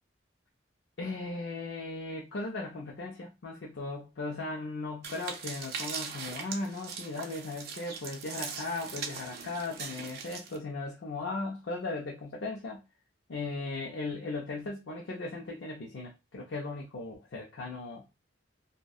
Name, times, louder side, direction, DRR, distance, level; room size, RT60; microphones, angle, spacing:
voice 1, 1.0-12.8 13.3-18.0, left 3 dB, 65° left, 0.5 m, -37 dB
sound 1, 5.0-10.6, right 6 dB, 50° right, 0.5 m, -40 dB
2.6 x 2.1 x 2.3 m
head